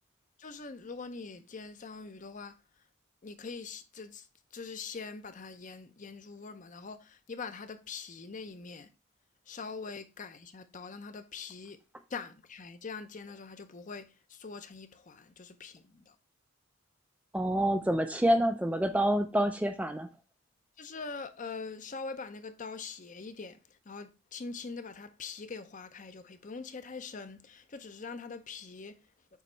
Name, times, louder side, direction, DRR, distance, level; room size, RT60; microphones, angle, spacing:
voice 1, 0.4-2.6 3.2-4.3 4.5-8.9 9.5-11.8 12.1-16.1 20.8-23.6 23.9-29.0, left 4 dB, 35° left, 0.6 m, -43 dB
voice 2, 17.3-20.1, equal, 5° right, 0.3 m, -27 dB
6.9 x 3.1 x 4.4 m
head